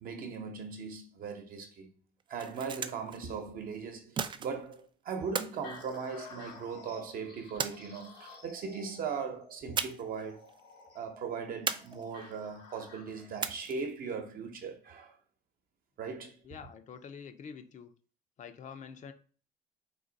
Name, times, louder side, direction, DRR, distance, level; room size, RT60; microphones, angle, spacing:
voice 1, 0.0-1.9 2.3-10.5 10.9-15.2 16.0-16.4, right 5 dB, 55° right, 0.9 m, -39 dB
sound 1, 2.2-3.2 4.2-4.8 5.3-6.6 7.6-8.4 9.8-10.2 10.5-10.6 11.7-12.4 13.4-14.0, right 6 dB, 30° right, 0.3 m, -37 dB
sound 2, 5.2-13.4, left 3 dB, 85° left, 1.9 m, -52 dB
voice 2, 16.4-17.9 18.4-19.1, left 6 dB, 45° left, 0.5 m, -46 dB
3.9 x 2.8 x 3.9 m
cardioid pair, 110°, 17 cm